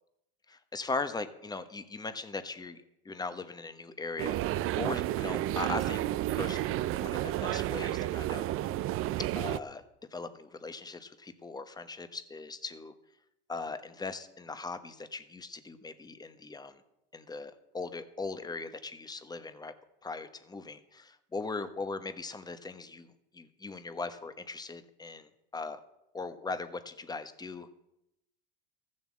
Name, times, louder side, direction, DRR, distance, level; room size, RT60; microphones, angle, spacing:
voice 1, 0.5-2.8 3.0-6.0 6.3-8.5 8.9-9.0 9.3-9.8 10.1-12.9 13.5-16.8 17.1-19.7 20.0-25.8 26.1-27.7, left 3 dB, 15° left, 10 dB, 1.1 m, -39 dB
sound 1, 4.2-9.6, right 14 dB, 50° right, 0.5 m, -31 dB
14.0 x 7.5 x 7.4 m, 0.86 s
supercardioid pair, 110°, 29 cm